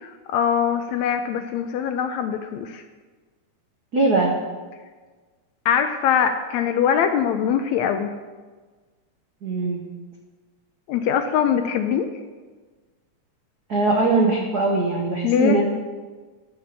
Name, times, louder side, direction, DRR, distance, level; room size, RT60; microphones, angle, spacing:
voice 1, 0.0-2.8 5.6-8.1 10.9-12.1 15.2-15.6, left 8 dB, 80° left, 7 dB, 1.7 m, -22 dB
voice 2, 3.9-4.3 9.4-9.8 13.7-15.6, right 3 dB, 75° right, 0 dB, 0.8 m, -21 dB
13.5 x 5.1 x 7.2 m, 1.4 s
omnidirectional pair, 3.6 m